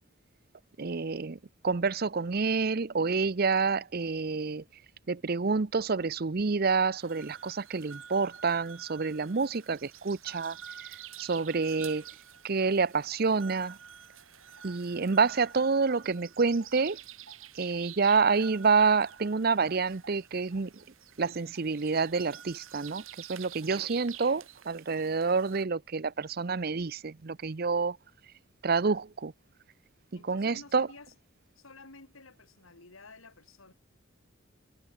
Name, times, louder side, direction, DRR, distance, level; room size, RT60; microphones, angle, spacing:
voice 1, 0.8-1.4 1.6-4.6 5.1-10.6 11.2-12.0 12.4-13.8 14.6-17.0 17.6-20.7 21.2-28.0 28.6-29.3 30.3-30.9, right 4 dB, 50° right, 0.6 m, -28 dB
sound 1, 7.0-25.6, right 9 dB, 85° right, 4.9 m, -49 dB
voice 2, 30.1-31.2 31.5-33.7, left 3 dB, 85° left, 3.4 m, -52 dB
head